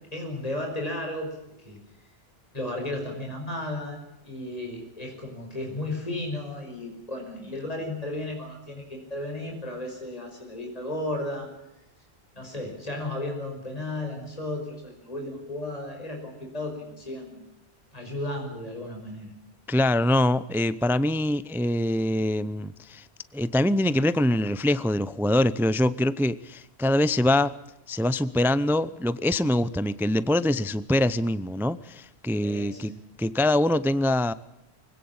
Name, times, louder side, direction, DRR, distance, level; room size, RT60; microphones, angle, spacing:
voice 1, 0.1-1.3 1.6-1.8 2.5-4.0 4.2-11.5 12.3-17.5 17.9-19.3 32.4-33.0, left 1 dB, 35° left, 2 dB, 5.9 m, -34 dB
voice 2, 19.7-23.1 23.3-27.5 27.9-32.9 33.2-34.3, left 1 dB, 5° right, 15 dB, 0.5 m, -24 dB
24.0 x 17.5 x 8.8 m, 0.89 s
omnidirectional pair, 1.1 m